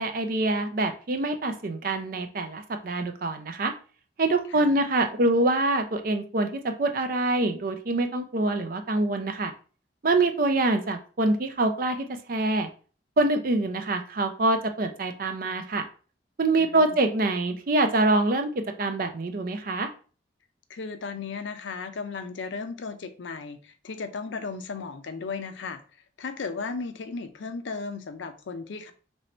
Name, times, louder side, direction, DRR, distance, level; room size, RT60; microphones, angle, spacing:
voice 1, 0.0-3.7 4.2-9.5 10.0-12.7 13.2-15.9 16.4-19.9, right 2 dB, 50° right, 0.5 m, -25 dB
voice 2, 4.5-4.8 16.6-17.0 20.7-25.8 26.2-28.9, left 4 dB, 80° left, 0.5 m, -35 dB
3.0 x 2.6 x 4.3 m
head